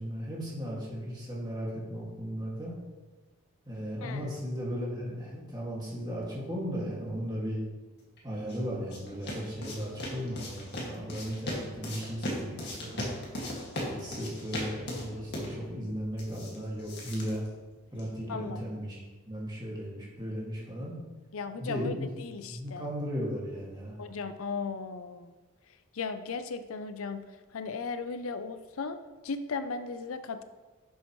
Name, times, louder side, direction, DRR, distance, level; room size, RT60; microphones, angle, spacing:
voice 1, 0.0-2.8 3.7-7.6 8.2-13.1 13.8-17.4 17.9-19.0 19.3-20.9 21.6-24.0, equal, 20° right, -4 dB, 2.0 m, -36 dB
voice 2, 4.0-4.3 18.3-18.6 21.3-22.8 24.0-25.3 25.9-27.2 27.5-29.0 29.2-30.4, left 4 dB, 75° left, 10 dB, 0.5 m, -36 dB
sound 1, 8.2-18.2, left 1 dB, 50° left, 2.0 m, -39 dB
11.0 x 7.0 x 3.1 m, 1.3 s
head